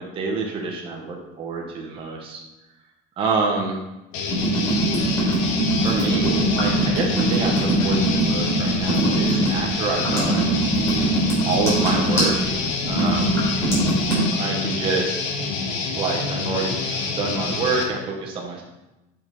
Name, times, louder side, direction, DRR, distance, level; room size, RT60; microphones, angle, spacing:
voice 1, 0.0-2.4 3.2-3.8 5.8-10.5 11.5-13.4 14.3-15.2 15.9-18.6, right 4 dB, 25° right, 0 dB, 0.9 m, -27 dB
Guitar, 4.1-17.8, left 4 dB, 75° left, 1.3 m, -27 dB
sound 1, 4.3-14.2, right 2 dB, 15° left, 2.8 m, -22 dB
7.0 x 5.2 x 4.4 m, 0.99 s
cardioid pair, 175°, 20 cm